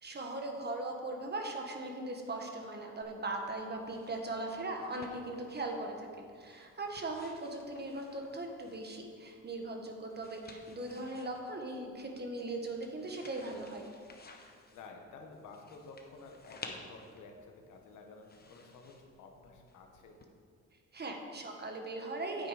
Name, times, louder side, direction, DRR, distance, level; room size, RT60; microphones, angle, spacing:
voice 1, 0.0-13.8 20.9-22.5, right 2 dB, 35° right, 2 dB, 1.5 m, -39 dB
sound 1, 3.0-20.2, left 3 dB, 30° left, 1.2 m, -55 dB
voice 2, 14.7-20.2, left 3 dB, 85° left, 3 dB, 1.4 m, -52 dB
9.1 x 7.8 x 5.0 m, 2.1 s
cardioid pair, 90°, 30 cm